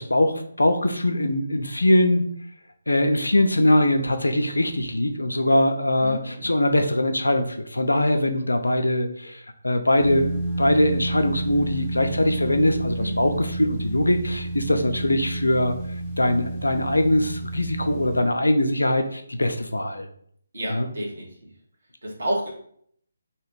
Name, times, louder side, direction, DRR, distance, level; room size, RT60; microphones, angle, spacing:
voice 1, 0.0-2.3 2.9-15.7 16.2-20.1 20.7-20.9, left 1 dB, 75° left, 7 dB, 0.6 m, -22 dB
voice 2, 6.0-6.5 13.0-13.2 20.5-21.3 22.0-22.5, right 1 dB, 60° right, -3 dB, 1.8 m, -30 dB
sound 1, 10.0-18.2, right 1 dB, ahead, 0.9 m, -30 dB
3.2 x 3.0 x 4.7 m, 0.63 s
figure-of-eight pair, 145°, 0 cm